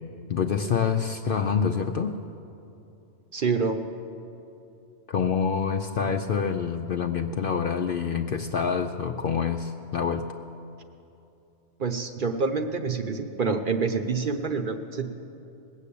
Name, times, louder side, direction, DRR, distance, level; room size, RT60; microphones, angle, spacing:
voice 1, 0.3-2.1 5.1-10.2, left 6 dB, 60° left, 6 dB, 0.6 m, -26 dB
voice 2, 3.3-3.8 11.8-15.1, right 4 dB, 50° right, 6 dB, 0.8 m, -27 dB
20.0 x 7.4 x 8.4 m, 2.8 s
omnidirectional pair, 1.3 m